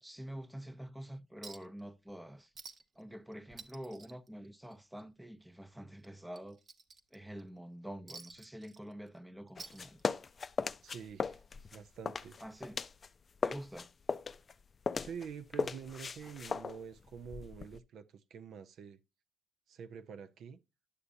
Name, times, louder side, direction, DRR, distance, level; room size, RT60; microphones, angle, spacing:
voice 1, 0.0-2.5 3.0-6.6 7.1-10.0 12.4-12.8 13.4-13.9, equal, 5° right, 0.6 m, -47 dB
Chink clink, 1.4-1.8 2.1-2.2 2.5-3.0 3.3-5.0 5.3-5.5 6.0-7.4 8.1-9.2 9.5-10.4 11.5-11.6, right 4 dB, 45° right, 0.8 m, -52 dB
sound 1, 9.6-13.1 13.4-17.8, left 5 dB, 40° left, 0.4 m, -38 dB
voice 2, 10.8-11.4 11.7-12.4 15.0-19.0 19.7-20.6, right 7 dB, 70° right, 0.5 m, -47 dB
9.8 x 6.8 x 2.6 m
cardioid pair, 80°, 0 cm